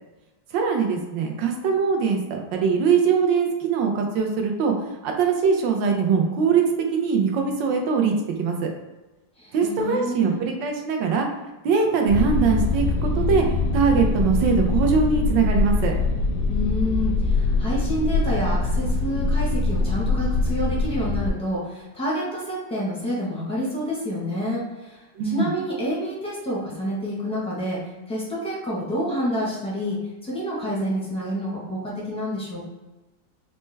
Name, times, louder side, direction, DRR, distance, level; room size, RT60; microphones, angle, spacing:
voice 1, 0.5-4.7 5.0-6.6 6.9-8.1 8.4-8.7 9.5-11.3 11.6-15.9 25.1-25.5, right 5 dB, 80° right, 2 dB, 1.3 m, -22 dB
voice 2, 9.4-10.4 16.5-32.6, equal, 5° left, -6 dB, 0.5 m, -28 dB
sound 1, 12.1-21.3, left 3 dB, 85° left, 1.3 m, -23 dB
4.3 x 2.2 x 3.2 m, 1.1 s
omnidirectional pair, 1.9 m